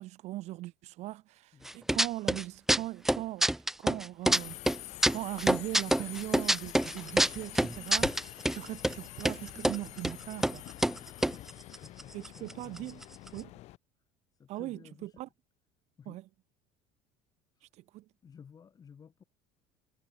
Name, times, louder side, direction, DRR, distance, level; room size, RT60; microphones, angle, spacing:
voice 1, 0.0-4.6 5.1-10.6 12.1-13.0 13.3-13.5 14.5-15.3 16.1-16.2 17.9-18.0, right 17 dB, 60° right, 2.7 m, -40 dB
voice 2, 1.5-2.0 11.5-13.0 14.3-15.2 16.0-16.2 17.5-17.7 18.2-19.2, left 7 dB, 30° left, 7.0 m, -55 dB
sound 1, 1.7-2.4 2.7-4.4 4.7-8.6 8.8-8.9 9.2-9.8 10.0-10.1 10.4-10.6 10.8-12.5 12.8-12.9 13.0-13.4, right 1 dB, 5° right, 0.5 m, -26 dB
Subway metro underground, 4.3-13.8, left 17 dB, 60° left, 1.0 m, -46 dB
cardioid pair, 130°, 13 cm